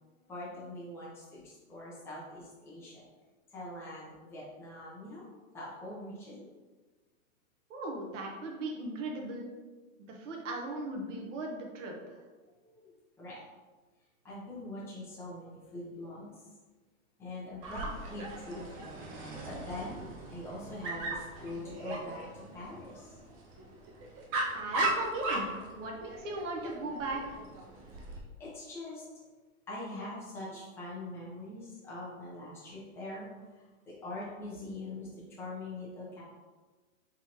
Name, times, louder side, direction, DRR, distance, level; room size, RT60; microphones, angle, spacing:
voice 1, 0.2-3.0 3.5-5.3 5.5-6.5 12.6-12.8 13.2-13.4 14.2-16.3 17.2-23.2 28.2-29.2 29.7-36.2, left 1 dB, 5° left, -9 dB, 0.9 m, -43 dB
voice 2, 7.7-9.5 10.1-11.9 24.5-27.4, right 2 dB, 60° right, 1 dB, 1.1 m, -38 dB
Dog, 17.6-28.2, right 2 dB, 25° right, 0.5 m, -38 dB
4.0 x 3.7 x 2.9 m, 1.3 s
hypercardioid pair, 145°, 42 cm